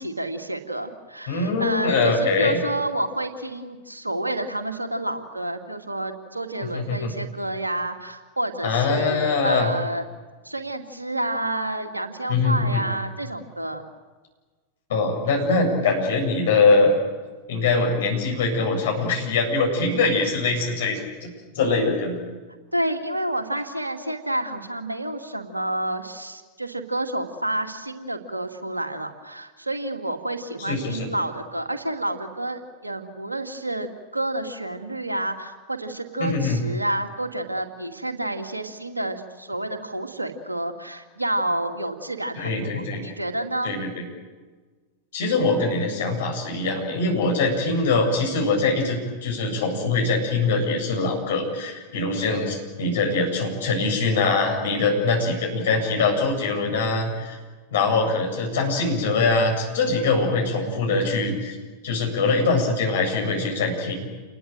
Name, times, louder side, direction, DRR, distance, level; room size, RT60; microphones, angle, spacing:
voice 1, 0.0-10.0 10.4-13.8 22.7-43.7 52.2-52.4, right 1 dB, 85° right, 6 dB, 2.3 m, -29 dB
voice 2, 1.3-2.6 6.7-7.1 8.6-9.7 12.3-12.8 14.9-17.0 17.5-21.3 21.5-22.2 30.7-31.1 36.2-36.6 42.3-43.1 43.6-44.0 45.1-57.4 57.7-61.6 61.8-63.9, left 3 dB, 60° left, 2 dB, 7.8 m, -23 dB
28.5 x 20.5 x 9.1 m, 1.4 s
figure-of-eight pair, 90°, 0 cm